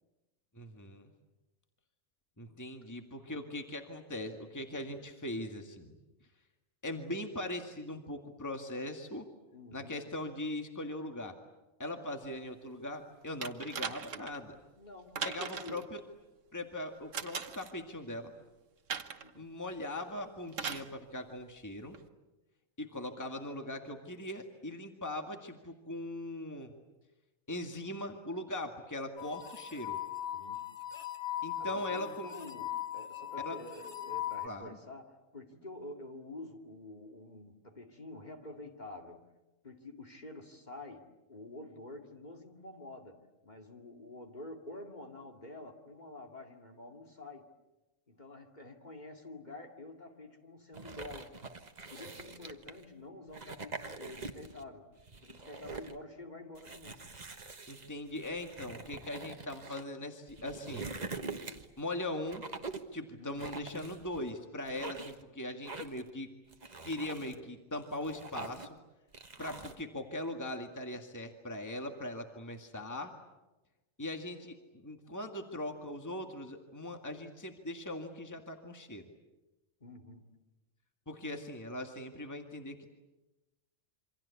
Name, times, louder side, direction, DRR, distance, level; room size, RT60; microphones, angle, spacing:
voice 1, 0.6-1.1 2.4-6.0 6.8-9.3 9.7-11.3 11.8-14.6 15.2-16.0 16.5-18.3 19.3-22.0 22.8-26.7 27.5-30.0 31.4-32.3 33.4-33.6 34.4-34.7 57.7-60.9 61.8-62.4 62.9-66.3 66.8-68.8 69.4-73.1 74.0-79.0 81.1-82.9, left 1 dB, 15° left, 4 dB, 2.0 m, -40 dB
voice 2, 9.5-10.1 14.8-15.9 19.2-19.5 30.3-30.7 31.6-39.2 39.6-47.5 48.1-51.4 51.9-54.9 55.2-57.0 63.2-63.6 79.8-80.3, left 2 dB, 35° left, 3 dB, 2.5 m, -48 dB
sound 1, 13.4-14.4 15.2-15.8 17.1-17.7 18.9-19.3 20.5-20.9 21.9-22.0, right 6 dB, 80° right, 1.6 m, -39 dB
sound 2, 29.2-34.5, left 12 dB, 60° left, 2.2 m, -39 dB
sound 3, 50.7-52.8 53.3-54.6 55.0-56.0 56.6-59.8 60.3-61.8 62.3-62.9 63.4-64.3 64.7-65.2 65.7-66.1 66.5-67.4 67.8-68.8 69.1-69.8, right 3 dB, 35° right, 1.5 m, -44 dB
28.0 x 25.5 x 8.4 m, 1.1 s
omnidirectional pair, 1.3 m